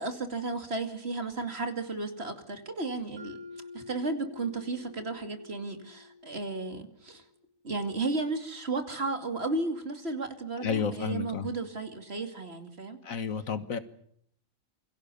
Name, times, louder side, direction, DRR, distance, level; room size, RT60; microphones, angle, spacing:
voice 1, 0.0-3.4 3.7-7.2 7.6-13.0, right 3 dB, 50° right, 7 dB, 2.8 m, -34 dB
Mallet percussion, 3.2-7.2, left 3 dB, 85° right, 7.2 m, -48 dB
voice 2, 10.6-11.5 13.0-13.8, left 6 dB, 80° left, 11 dB, 1.9 m, -31 dB
27.5 x 23.0 x 7.0 m, 0.69 s
omnidirectional pair, 1.4 m